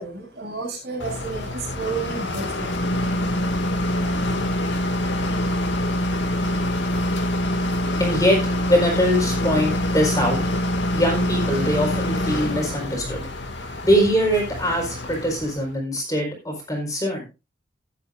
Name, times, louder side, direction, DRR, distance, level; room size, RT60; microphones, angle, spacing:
voice 1, 0.0-2.8, right 4 dB, 55° right, -1 dB, 7.1 m, -31 dB
sound 1, 1.0-15.7, left 1 dB, 75° left, 2.1 m, -25 dB
voice 2, 7.9-8.4 8.7-10.4 10.9-13.2 13.8-17.3, equal, 20° left, 0 dB, 4.4 m, -22 dB
18.0 x 8.5 x 2.5 m, 0.29 s
head